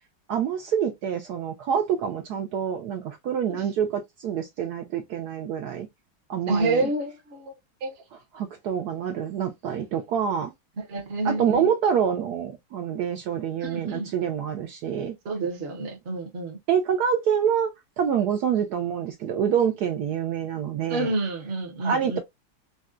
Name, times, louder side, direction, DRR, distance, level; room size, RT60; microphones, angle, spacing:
voice 1, 0.3-5.9 6.3-6.9 8.3-10.5 11.2-15.2 16.7-21.2 21.8-22.2, right 8 dB, 85° right, 0.8 m, -26 dB
voice 2, 6.5-7.5 7.8-8.0 10.8-11.7 13.6-14.1 15.2-16.6 20.9-22.2, right 2 dB, 50° right, 0.7 m, -28 dB
4.0 x 2.2 x 2.3 m
omnidirectional pair, 2.3 m